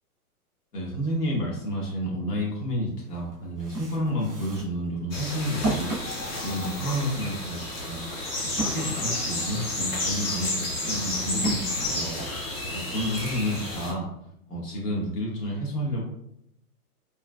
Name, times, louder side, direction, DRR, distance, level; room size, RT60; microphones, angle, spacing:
voice 1, 0.7-5.9 6.3-8.0 8.4-12.4 12.7-14.1 14.5-16.0, equal, 90° left, -3 dB, 1.1 m, -30 dB
sound 1, 2.8-2.9 3.3-9.7 10.1-12.7, right 2 dB, 5° right, 0.4 m, -36 dB
sound 2, 5.1-13.9, left 2 dB, 40° left, 0.6 m, -31 dB
3.0 x 2.4 x 2.2 m, 0.77 s
hypercardioid pair, 160°, 46 cm